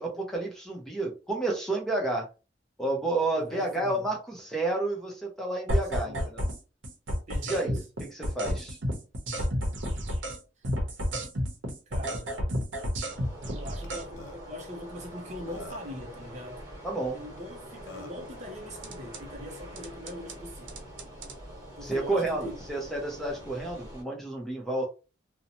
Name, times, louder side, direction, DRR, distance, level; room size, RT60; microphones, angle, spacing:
voice 1, 0.0-2.3 2.8-6.5 7.5-8.8 16.8-17.2 21.8-24.9, right 2 dB, ahead, 0.7 m, -30 dB
voice 2, 3.3-4.1 6.0-6.3 7.3-7.8 10.6-10.7 11.9-12.4 13.4-16.6 17.1-20.8 21.8-22.5, left 1 dB, 40° right, 0.5 m, -42 dB
sound 1, 5.7-6.6 6.8-10.4 10.6-14.0 18.8-19.2 19.8-20.3 20.7-21.3, equal, 90° right, 0.8 m, -31 dB
sound 2, 13.1-24.0, right 1 dB, 20° right, 1.3 m, -45 dB
Burping eructation, 13.8-13.9 14.2-14.4 15.1-15.2 15.5-16.0 17.4-17.5 17.9-18.2, left 2 dB, 80° left, 0.5 m, -44 dB
2.6 x 2.1 x 2.8 m
head